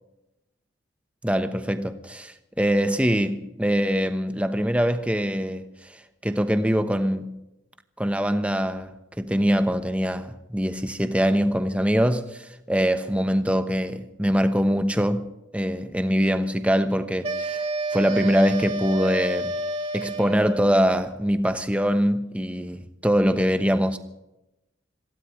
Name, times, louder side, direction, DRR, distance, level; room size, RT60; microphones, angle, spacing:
voice 1, 1.2-6.0 6.2-7.3 8.0-15.3 15.5-19.6 19.9-24.0, equal, 5° right, 1.0 m, -23 dB
sound 1, 17.2-20.7, right 2 dB, 30° right, 2.1 m, -29 dB
26.5 x 17.0 x 3.2 m
head